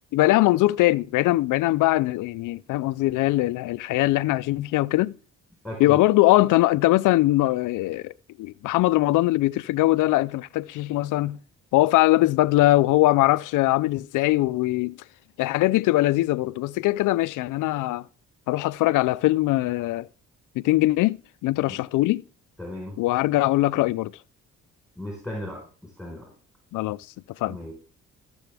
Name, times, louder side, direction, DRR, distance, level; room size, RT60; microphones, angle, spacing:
voice 1, 0.1-5.1 5.8-8.1 8.4-11.4 11.7-14.9 15.4-18.0 18.5-20.1 20.6-21.2 21.4-22.2 23.0-24.1 26.7-27.0 27.4-27.6, left 17 dB, 85° left, 0.5 m, -21 dB
voice 2, 5.6-6.0 21.7-21.8 22.6-23.0 25.0-26.3 27.5-27.7, left 1 dB, ahead, 4.2 m, -36 dB
14.5 x 6.9 x 3.4 m
cardioid pair, 90°, 30 cm